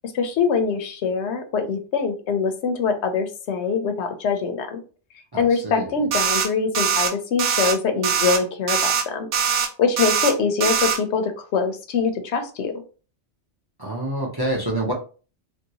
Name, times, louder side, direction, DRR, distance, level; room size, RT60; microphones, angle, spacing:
voice 1, 0.0-4.8 5.3-9.3 9.8-12.7, left 5 dB, 80° left, 7 dB, 0.9 m, -23 dB
voice 2, 5.3-5.9 13.8-14.9, right 1 dB, 30° right, 0 dB, 0.5 m, -27 dB
sound 1, 6.1-6.5 6.7-7.1 7.4-7.7 8.0-8.4 8.7-9.0 9.3-9.7 10.0-10.3 10.6-11.0, right 7 dB, 85° right, 0.9 m, -21 dB
2.9 x 2.6 x 2.8 m, 0.37 s
omnidirectional pair, 1.2 m